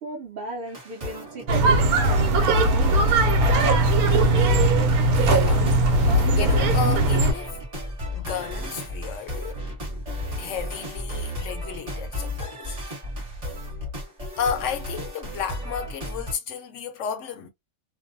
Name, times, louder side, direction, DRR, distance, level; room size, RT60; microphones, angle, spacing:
voice 1, 0.0-2.3 2.6-3.1, right 1 dB, 55° right, 0.7 m, -37 dB
sound 1, 0.7-16.3, equal, 30° right, 1.0 m, -35 dB
sound 2, 1.5-7.3, right 2 dB, 90° right, 1.1 m, -19 dB
voice 2, 5.2-5.7 6.0-7.6 8.1-9.6 10.4-12.8 14.4-17.5, left 7 dB, 65° left, 0.8 m, -32 dB
2.5 x 2.1 x 2.6 m
omnidirectional pair, 1.5 m